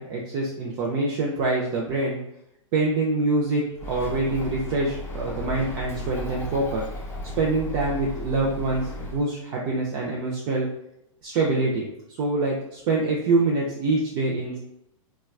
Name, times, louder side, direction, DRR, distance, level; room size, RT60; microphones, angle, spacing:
voice 1, 0.0-2.2 2.7-6.9 7.4-10.7 11.2-11.9 12.2-14.6, right 2 dB, 45° right, -3 dB, 0.5 m, -25 dB
Bird, 3.8-9.2, left 1 dB, 15° left, 0.6 m, -35 dB
2.9 x 2.3 x 2.4 m, 0.79 s
hypercardioid pair, 120°, 17 cm